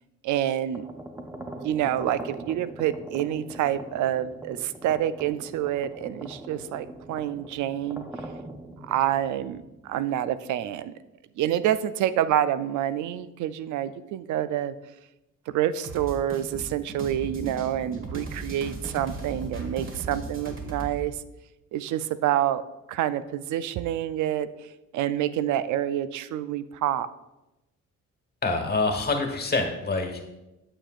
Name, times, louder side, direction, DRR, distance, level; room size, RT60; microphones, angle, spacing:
voice 1, 0.2-0.8 1.6-8.0 8.8-10.9 11.4-14.7 15.5-21.2 21.7-22.6 22.9-27.1, right 11 dB, 75° right, 14 dB, 0.5 m, -27 dB
sound 1, 0.7-10.4, right 2 dB, 10° right, 0.6 m, -41 dB
sound 2, 15.8-21.0, right 3 dB, 45° right, 1.5 m, -37 dB
voice 2, 28.4-30.3, left 3 dB, 30° left, 4 dB, 1.3 m, -26 dB
8.7 x 6.6 x 2.4 m, 0.98 s
cardioid pair, 90°, 30 cm